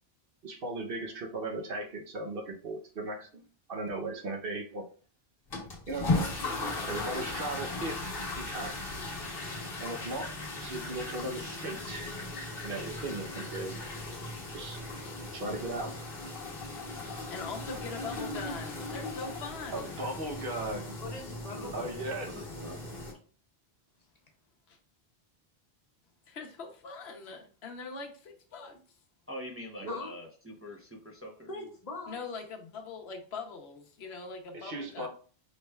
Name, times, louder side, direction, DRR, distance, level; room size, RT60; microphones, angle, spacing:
voice 1, 0.4-3.4 3.7-4.9 5.9-6.1 6.9-8.7 9.8-10.3 10.6-12.1 12.6-13.7 14.5-14.8 15.3-15.9 19.7-21.0 21.7-22.4 29.8-30.0 34.5-35.1, right 2 dB, 65° right, 2 dB, 1.0 m, -37 dB
sound 1, 5.5-23.1, left 2 dB, 65° left, 1.2 m, -37 dB
voice 2, 17.1-20.0 26.3-28.8 32.1-35.1, left 4 dB, 80° left, 3 dB, 1.1 m, -42 dB
voice 3, 21.0-21.9 29.9-30.1 31.5-32.2 35.0-35.1, left 3 dB, 40° left, 1 dB, 0.9 m, -41 dB
voice 4, 22.2-22.8 29.3-31.5, equal, 15° right, -1 dB, 0.6 m, -44 dB
5.0 x 3.2 x 2.3 m, 0.40 s
omnidirectional pair, 1.1 m